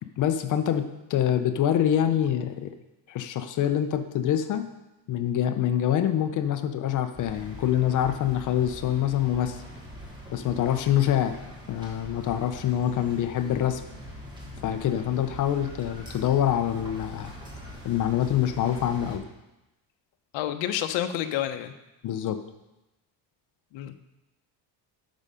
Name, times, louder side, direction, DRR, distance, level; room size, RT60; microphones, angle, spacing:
voice 1, 0.2-2.7 3.1-4.6 5.1-9.6 10.3-11.4 11.7-13.8 14.6-17.3 17.8-19.2 22.0-22.4, left 10 dB, 45° left, 9 dB, 0.6 m, -25 dB
sound 1, 7.1-19.2, equal, 10° right, 1.6 m, -43 dB
voice 2, 20.3-21.7 23.7-23.9, left 11 dB, 75° left, 9 dB, 0.9 m, -29 dB
8.7 x 6.3 x 5.6 m, 0.97 s
cardioid pair, 175°, 46 cm